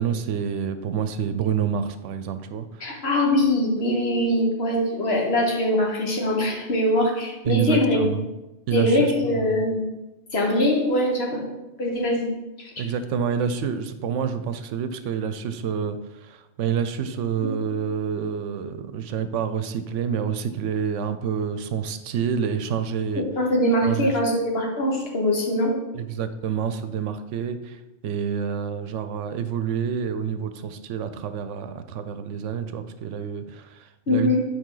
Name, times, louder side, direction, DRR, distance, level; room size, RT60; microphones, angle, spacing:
voice 1, 0.0-3.0 7.4-8.2 8.7-9.6 12.8-23.3 23.8-24.1 25.9-34.4, right 7 dB, 80° right, 10 dB, 0.9 m, -28 dB
voice 2, 2.8-8.1 8.7-9.9 10.3-11.4 11.8-12.3 12.6-12.7 17.4-17.6 23.2-25.8 34.1-34.4, left 1 dB, 55° left, 0 dB, 1.6 m, -22 dB
9.1 x 4.9 x 3.8 m, 1.0 s
omnidirectional pair, 1.2 m